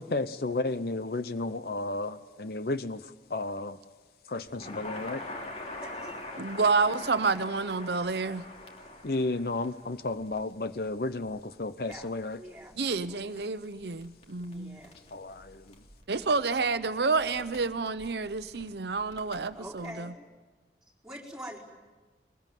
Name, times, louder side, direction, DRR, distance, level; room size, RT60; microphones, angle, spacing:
voice 1, 0.0-3.8 4.3-5.2 9.0-12.4 15.1-15.8, left 2 dB, 60° left, 12 dB, 0.8 m, -33 dB
Crackle, 4.5-19.9, left 2 dB, 40° left, 2.9 m, -46 dB
voice 2, 5.8-6.1 11.9-12.1 12.4-12.7 13.1-13.7 14.4-15.0 19.5-20.2 21.0-21.6, equal, 5° right, -5 dB, 4.5 m, -45 dB
voice 3, 6.4-8.4 12.8-14.8 16.1-20.1, right 4 dB, 75° right, 11 dB, 0.8 m, -29 dB
22.5 x 21.0 x 9.2 m, 1.3 s
head